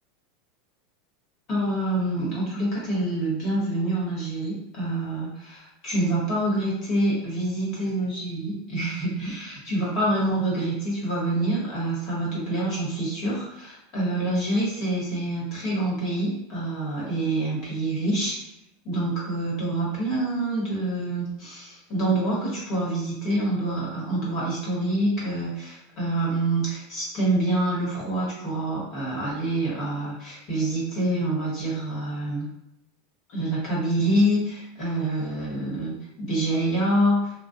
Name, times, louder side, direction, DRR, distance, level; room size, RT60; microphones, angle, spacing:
voice 1, 1.5-18.4 18.8-32.5 33.3-37.3, right 1 dB, 50° left, -5 dB, 1.2 m, -26 dB
2.3 x 2.2 x 2.6 m, 0.84 s
hypercardioid pair, 100°, 0 cm